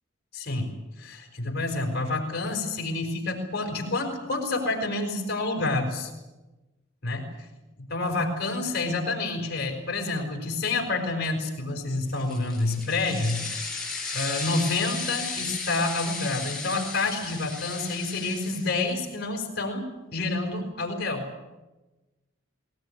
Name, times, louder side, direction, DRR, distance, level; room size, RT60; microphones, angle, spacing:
voice 1, 0.3-0.7 1.0-6.1 7.0-7.3 7.8-13.4 14.1-21.3, left 2 dB, 50° left, 3 dB, 5.3 m, -28 dB
sound 1, 12.1-19.1, left 4 dB, ahead, 6.3 m, -35 dB
21.0 x 20.0 x 9.6 m, 1.1 s
head